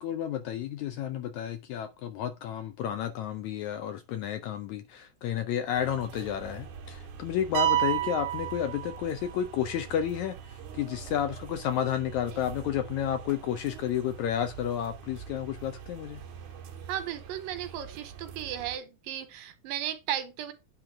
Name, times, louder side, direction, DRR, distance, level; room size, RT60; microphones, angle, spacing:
voice 1, 0.0-16.2, left 10 dB, 80° left, 1.7 m, -31 dB
sound 1, 5.8-18.8, right 7 dB, 65° right, 2.5 m, -45 dB
sound 2, 7.5-9.4, right 13 dB, 45° right, 2.2 m, -29 dB
voice 2, 16.9-20.5, right 11 dB, 85° right, 2.8 m, -35 dB
9.1 x 3.8 x 4.7 m
omnidirectional pair, 3.9 m